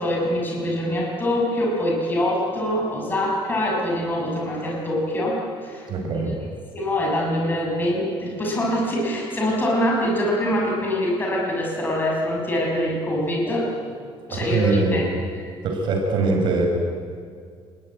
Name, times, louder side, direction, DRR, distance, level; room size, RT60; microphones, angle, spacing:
voice 1, 0.0-6.1 6.7-13.7 14.3-15.1, left 1 dB, 20° left, -2 dB, 6.2 m, -24 dB
voice 2, 5.9-6.3 14.3-15.0 15.6-16.7, right 3 dB, 50° right, 2 dB, 5.3 m, -22 dB
28.5 x 21.0 x 9.6 m, 2.2 s
cardioid pair, 175°, 10 cm